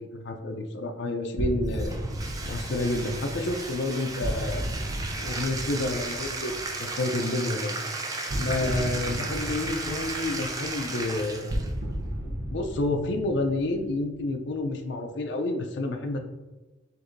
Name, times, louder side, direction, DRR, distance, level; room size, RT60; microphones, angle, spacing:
voice 1, 0.0-2.0 2.4-4.7 5.2-6.5 6.8-7.7 8.4-11.5 12.5-16.2, left 2 dB, 65° left, 4 dB, 0.5 m, -29 dB
sound 1, 1.4-7.1 8.3-14.6, equal, 65° right, 0.8 m, -34 dB
Bathtub (filling or washing), 1.7-11.7, right 3 dB, 20° right, 0.4 m, -35 dB
7.7 x 2.6 x 2.6 m, 1.2 s
head